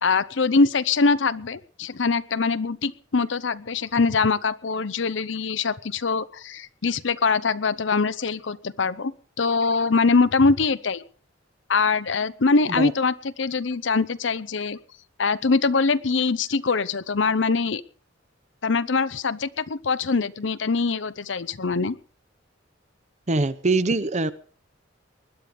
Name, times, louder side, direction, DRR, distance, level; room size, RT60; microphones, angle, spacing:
voice 1, 0.0-11.0 11.7-14.8 15.2-17.8 18.6-22.0, left 4 dB, 70° left, 16 dB, 0.8 m, -23 dB
voice 2, 23.3-24.3, right 3 dB, 40° right, 15 dB, 0.8 m, -23 dB
20.5 x 11.0 x 5.1 m, 0.42 s
head